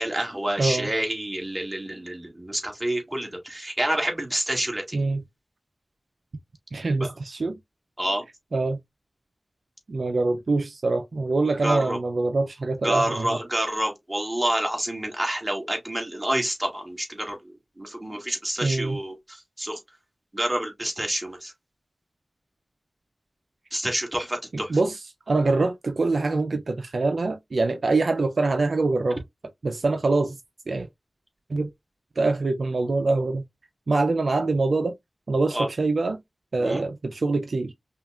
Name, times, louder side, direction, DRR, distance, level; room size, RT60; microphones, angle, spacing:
voice 1, 0.0-5.0 7.0-7.1 8.0-8.3 11.6-12.0 12.8-17.4 17.8-19.8 20.3-21.5 23.7-24.8 35.5-35.7 36.6-36.8, right 1 dB, 25° right, 2.2 m, -28 dB
voice 2, 0.6-0.9 4.9-5.2 6.7-7.6 8.5-8.8 9.9-13.4 18.6-19.0 24.5-25.0 25.3-29.2 29.6-30.4 30.7-30.9 31.5-31.7 32.2-33.4 33.9-34.9 35.3-36.2 36.5-37.7, right 3 dB, 75° right, 0.5 m, -24 dB
5.6 x 2.5 x 2.4 m
cardioid pair, 45°, 0 cm